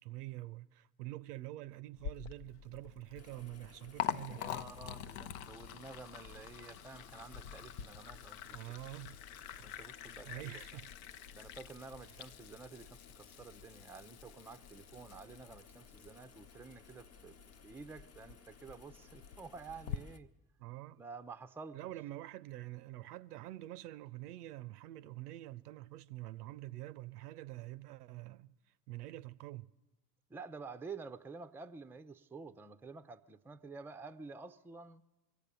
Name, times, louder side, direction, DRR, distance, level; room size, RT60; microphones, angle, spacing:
voice 1, 0.0-4.4 8.5-9.2 9.6-9.7 10.2-10.9 20.6-21.0 21.7-28.6 28.9-29.7, right 16 dB, 70° right, 0.6 m, -46 dB
Liquid, 2.0-20.0, left 9 dB, 60° left, 0.7 m, -46 dB
sound 1, 3.2-20.2, left 5 dB, 30° left, 1.0 m, -61 dB
voice 2, 4.3-8.6 9.6-10.8 11.3-17.4 17.6-20.3 21.0-21.8 30.3-35.0, right 4 dB, 5° right, 0.5 m, -50 dB
24.0 x 8.3 x 6.8 m
figure-of-eight pair, 60°, 48 cm